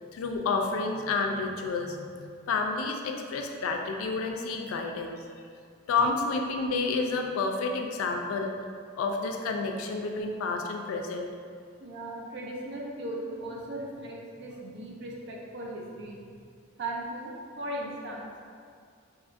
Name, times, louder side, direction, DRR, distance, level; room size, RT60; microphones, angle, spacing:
voice 1, 0.1-5.2 5.9-8.5 9.0-11.3, left 4 dB, 80° left, 4 dB, 0.3 m, -30 dB
voice 2, 11.8-16.4 16.8-18.4, right 1 dB, 55° right, -2 dB, 0.4 m, -38 dB
2.8 x 2.5 x 2.4 m, 2.2 s
head